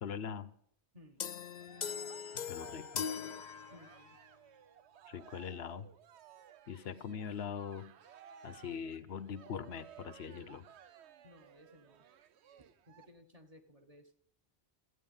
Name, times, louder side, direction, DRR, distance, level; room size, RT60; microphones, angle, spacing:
voice 1, 0.0-0.5 2.5-2.9 5.1-5.9 6.7-7.9 8.4-10.7, left 7 dB, 70° left, 15 dB, 1.0 m, -42 dB
voice 2, 0.9-1.3 2.5-3.4 3.7-4.2 7.0-7.2 11.2-12.1 12.6-14.1, left 1 dB, 35° right, 4 dB, 1.5 m, -60 dB
sound 1, 1.2-4.2, left 7 dB, 50° left, 0.6 m, -41 dB
Cheering, 1.3-13.1, right 9 dB, 85° right, 1.0 m, -58 dB
14.5 x 9.3 x 5.5 m, 0.68 s
omnidirectional pair, 1.1 m